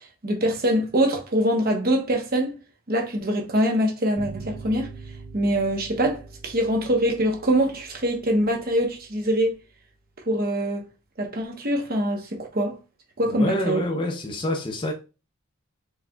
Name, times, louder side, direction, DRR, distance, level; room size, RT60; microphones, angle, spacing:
voice 1, 0.2-2.6 2.9-4.9 5.3-9.5 10.3-10.9 11.2-12.8 13.2-13.8, right 1 dB, 40° right, 0.9 m, -24 dB
sound 1, 4.2-9.3, right 4 dB, 15° right, 1.3 m, -43 dB
voice 2, 13.3-14.9, left 1 dB, 20° left, 0.5 m, -27 dB
4.4 x 3.5 x 2.2 m
head